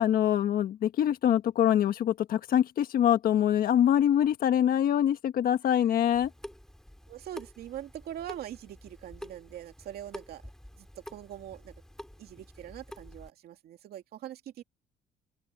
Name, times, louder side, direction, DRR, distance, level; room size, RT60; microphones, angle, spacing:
voice 1, 0.0-6.3, left 10 dB, 60° left, 1.5 m, -24 dB
Water tap faucet / Sink (filling or washing) / Drip, 6.1-13.3, equal, 5° left, 3.9 m, -48 dB
voice 2, 7.1-10.4 10.8-11.7 12.2-14.6, right 12 dB, 65° right, 2.5 m, -43 dB
open air
cardioid pair, 110°, 17 cm